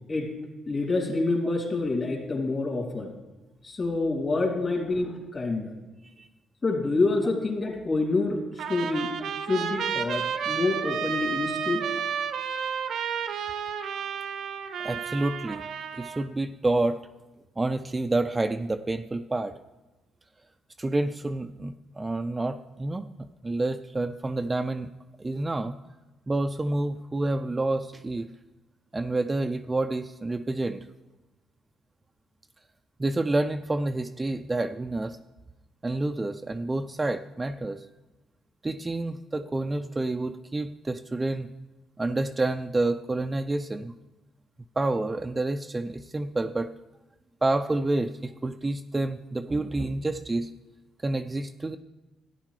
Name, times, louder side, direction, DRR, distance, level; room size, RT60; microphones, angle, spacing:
voice 1, 0.7-3.1 3.6-5.7 6.6-9.1 9.4-11.8, left 3 dB, 35° left, 0 dB, 2.9 m, -27 dB
Trumpet, 8.6-16.3, right 7 dB, 70° right, 0.7 m, -31 dB
voice 2, 14.8-15.6 15.9-17.0 17.6-19.5 20.8-23.1 23.4-24.9 25.2-25.8 26.3-28.3 28.9-30.8 33.0-35.2 35.8-37.9 38.6-41.5 42.0-43.9 44.8-46.7 47.4-50.5 51.0-51.8, right 2 dB, 20° right, 7 dB, 0.4 m, -28 dB
13.0 x 9.8 x 3.2 m, 1.1 s
cardioid pair, 90°, 0 cm